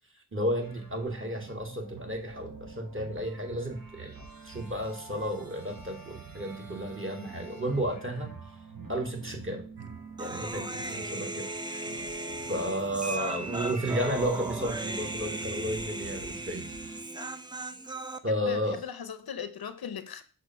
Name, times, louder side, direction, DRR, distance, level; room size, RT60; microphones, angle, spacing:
voice 1, 0.3-8.3 8.9-9.6 10.2-10.6 10.9-11.4 12.5-16.7 18.2-18.8, equal, 35° right, 1.6 m, -32 dB
sound 1, 0.6-17.0, right 4 dB, 60° right, 1.1 m, -46 dB
sound 2, 9.8-12.2 12.4-16.1 16.4-16.7, right 3 dB, 85° right, 0.7 m, -45 dB
Human voice, 10.2-18.2, right 1 dB, 10° right, 0.5 m, -37 dB
voice 2, 10.5-11.1 18.3-20.2, left 7 dB, 75° left, 0.7 m, -39 dB
6.3 x 2.7 x 5.6 m
cardioid pair, 45°, 37 cm